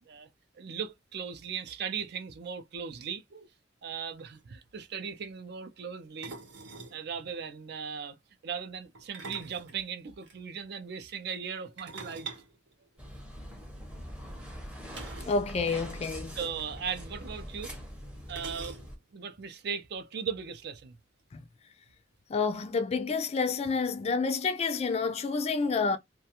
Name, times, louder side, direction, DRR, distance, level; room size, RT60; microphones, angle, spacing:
voice 1, 0.5-3.5 3.8-6.4 6.9-8.2 8.4-12.3 15.6-15.8 16.3-17.7 18.3-18.9 19.1-21.0, right 6 dB, 60° right, 0.4 m, -38 dB
sound 1, 3.9-4.0 4.2-4.4 6.2-7.0 8.9-10.4 11.8-13.4 14.9-15.4 15.7-15.8 16.1-16.3 17.3-17.4 18.3-19.1, right 4 dB, 75° right, 0.8 m, -45 dB
sound 2, 13.0-19.0, equal, 5° right, 0.6 m, -43 dB
voice 2, 15.2-16.4 21.3-21.4 22.3-26.0, left 4 dB, 35° left, 0.3 m, -29 dB
2.3 x 2.2 x 2.8 m
head